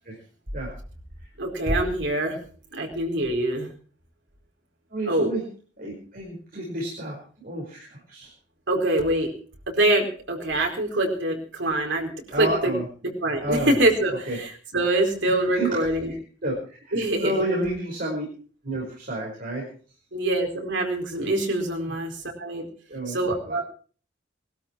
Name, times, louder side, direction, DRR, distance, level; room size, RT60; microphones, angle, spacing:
voice 1, 1.4-2.4 2.7-3.7 5.1-5.3 8.7-9.3 9.7-12.7 13.2-16.1 16.9-17.4 20.1-22.7 23.1-23.6, right 1 dB, 65° right, 2 dB, 4.4 m, -24 dB
voice 2, 4.9-5.4 5.8-8.3 12.3-12.8 13.4-13.7 14.1-14.4 15.2-15.8 16.4-18.2 18.6-19.7 21.9-22.0 22.9-23.6, right 1 dB, 45° right, -3 dB, 5.0 m, -30 dB
21.0 x 13.0 x 4.6 m, 0.41 s
head